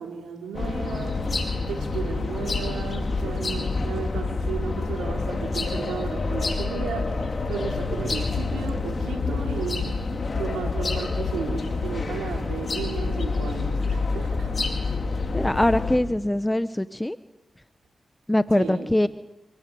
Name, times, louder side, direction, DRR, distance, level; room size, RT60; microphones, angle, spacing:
voice 1, 0.0-7.2 7.5-9.9 10.3-14.6 18.5-18.9, right 6 dB, 90° right, 1 dB, 4.3 m, -34 dB
sound 1, 0.5-16.0, left 3 dB, 55° left, 5.1 m, -27 dB
voice 2, 15.3-17.2 18.3-19.1, left 1 dB, 15° left, 12 dB, 1.1 m, -22 dB
27.5 x 19.0 x 9.5 m, 0.94 s
supercardioid pair, 45°, 0 cm